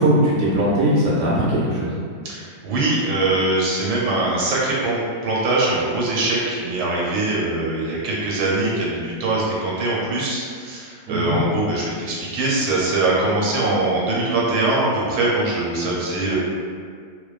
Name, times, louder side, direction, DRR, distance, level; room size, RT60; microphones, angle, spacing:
voice 1, 0.0-2.0 11.1-11.3, right 1 dB, 50° right, -8 dB, 0.7 m, -19 dB
voice 2, 2.3-16.4, right 2 dB, 90° right, -5 dB, 1.2 m, -22 dB
2.5 x 2.2 x 2.3 m, 2.1 s
omnidirectional pair, 1.7 m